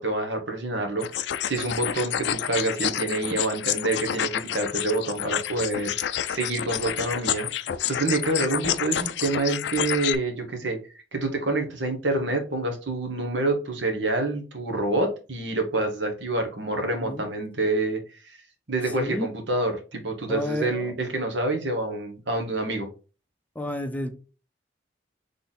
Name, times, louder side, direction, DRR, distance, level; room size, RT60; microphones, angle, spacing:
voice 1, 0.0-7.5 7.9-10.8 11.1-18.0 18.3-18.4 18.7-22.9, right 2 dB, 85° right, 5 dB, 1.2 m, -27 dB
sound 1, 1.0-10.1, left 10 dB, 70° left, 0.4 m, -29 dB
voice 2, 19.0-19.3 20.3-20.9 23.6-24.1, left 1 dB, 10° left, 6 dB, 0.5 m, -30 dB
3.8 x 3.4 x 4.1 m, 0.34 s
head